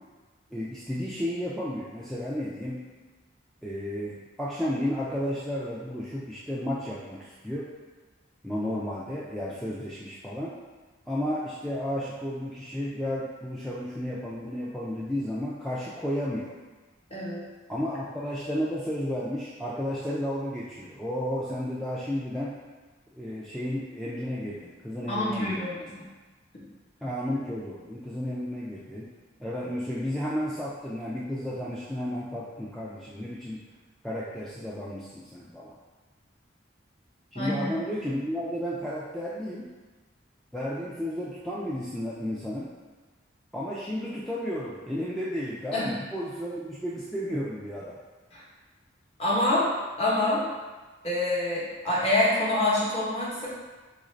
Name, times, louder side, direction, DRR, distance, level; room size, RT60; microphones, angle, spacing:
voice 1, 0.5-2.8 3.6-7.7 8.4-10.6 11.1-16.6 17.7-22.6 23.2-25.9 27.0-29.1 29.4-33.6 34.0-35.8 37.3-39.7 40.5-42.7 43.5-48.0, equal, ahead, -8 dB, 0.3 m, -32 dB
voice 2, 17.1-17.4 25.1-26.1 26.5-26.6 37.3-37.7 45.7-45.9 48.3-48.4 49.2-49.7 50.0-50.4 51.0-53.5, left 1 dB, 30° left, -6 dB, 0.9 m, -26 dB
3.9 x 2.5 x 3.1 m, 1.3 s
head